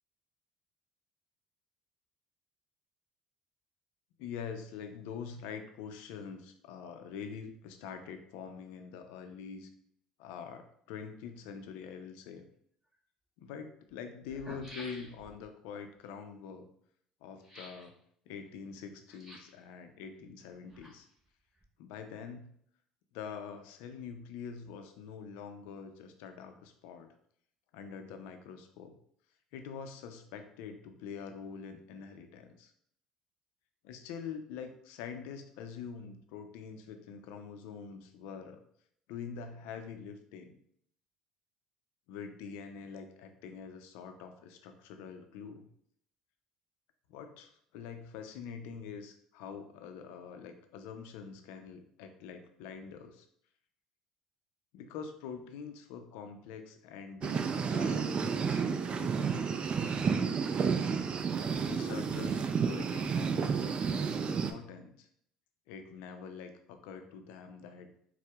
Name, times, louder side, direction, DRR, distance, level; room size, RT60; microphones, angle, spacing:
voice 1, 4.2-9.7 10.2-12.5 13.4-16.7 17.2-17.9 18.3-21.1 21.8-22.5 23.1-27.1 27.7-29.0 29.5-32.7 33.8-38.6 39.1-40.6 42.1-45.7 47.1-53.3 54.7-59.7 61.7-65.1 65.7-68.0, left 6 dB, 75° left, 7 dB, 0.4 m, -45 dB
sound 1, 12.9-13.0 13.9-14.0 14.2-15.5 17.4-17.9 19.1-19.6 20.5-21.3 21.6-21.7, equal, 20° right, 1.1 m, -50 dB
sound 2, 57.2-64.5, right 6 dB, 40° right, 0.3 m, -31 dB
4.3 x 2.0 x 2.3 m, 0.66 s
hypercardioid pair, 70°, 3 cm